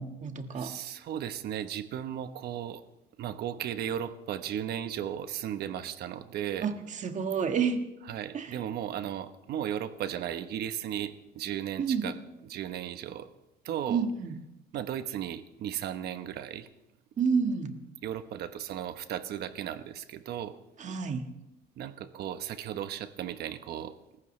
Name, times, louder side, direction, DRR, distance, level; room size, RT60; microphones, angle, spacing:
voice 1, 0.0-0.7 6.6-7.8 8.3-8.5 11.8-12.1 13.9-14.4 17.2-17.8 20.8-21.3, right 6 dB, 45° right, 7 dB, 1.6 m, -29 dB
voice 2, 0.5-2.8 3.2-6.7 8.1-12.1 12.5-13.3 13.6-14.0 14.7-16.7 18.0-20.6 21.8-24.2, right 10 dB, 70° right, 10 dB, 1.1 m, -35 dB
29.5 x 14.5 x 3.3 m, 0.92 s
cardioid pair, 110°, 17 cm